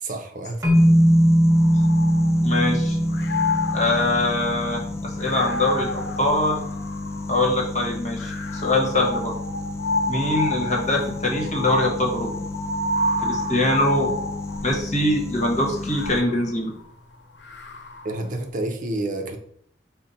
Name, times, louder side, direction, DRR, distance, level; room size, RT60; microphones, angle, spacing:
voice 1, 0.0-0.8 18.0-19.4, right 2 dB, 50° right, 4 dB, 0.6 m, -29 dB
sound 1, 0.6-4.9, equal, 20° right, 1.0 m, -19 dB
sound 2, 0.7-16.2, left 2 dB, 15° left, 0.3 m, -33 dB
sound 3, 1.5-2.7 3.1-7.5 8.2-14.9 15.6-18.2, left 2 dB, 85° left, 0.6 m, -30 dB
voice 2, 2.4-3.0 3.7-4.8 5.2-6.6 7.3-9.3 10.1-12.3 13.2-14.1 14.6-16.7, left 1 dB, 45° left, 0 dB, 1.1 m, -23 dB
5.4 x 2.1 x 4.0 m, 0.66 s
head